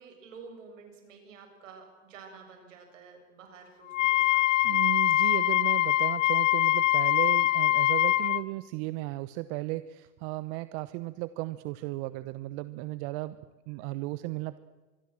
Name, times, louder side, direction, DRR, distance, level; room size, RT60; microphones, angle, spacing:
voice 1, 0.0-4.4, right 5 dB, 85° right, 4 dB, 7.1 m, -50 dB
Wind instrument woodwind instrument, 3.9-8.4, left 15 dB, 80° left, 0.8 m, -24 dB
voice 2, 4.6-13.4 13.7-14.6, right 19 dB, 60° right, 15 dB, 1.1 m, -35 dB
26.0 x 22.5 x 7.6 m, 1.2 s
hypercardioid pair, 90°, 37 cm